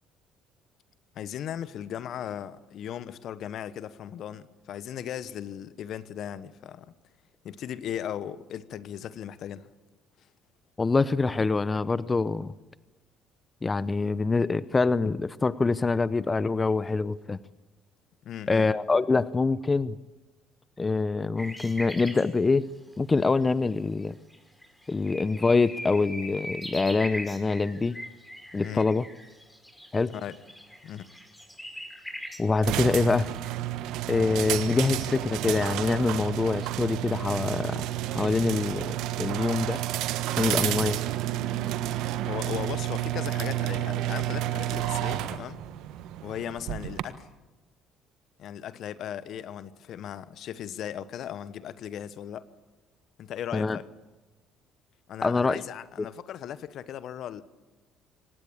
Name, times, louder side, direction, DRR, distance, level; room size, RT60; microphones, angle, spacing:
voice 1, 1.1-6.9 7.4-9.7 18.2-18.7 28.6-28.9 30.1-30.4 30.8-31.1 40.5-40.9 42.2-45.6 46.2-47.3 48.4-52.4 53.2-53.8 55.1-57.4, left 10 dB, 60° left, 1.1 m, -37 dB
voice 2, 10.8-12.5 13.6-17.4 18.5-20.0 20.8-22.7 23.0-24.2 24.9-28.0 28.5-29.0 29.9-30.1 32.4-33.3 34.1-39.8 40.3-41.0 53.5-53.8 55.2-55.6, left 3 dB, 25° left, 0.8 m, -25 dB
sound 1, 21.4-22.3 23.7-23.8 24.3-24.4 24.6-33.5, left 1 dB, 5° left, 5.3 m, -41 dB
sound 2, 32.6-47.0, right 13 dB, 70° right, 1.3 m, -30 dB
25.0 x 19.0 x 8.8 m
hypercardioid pair, 60°, 0 cm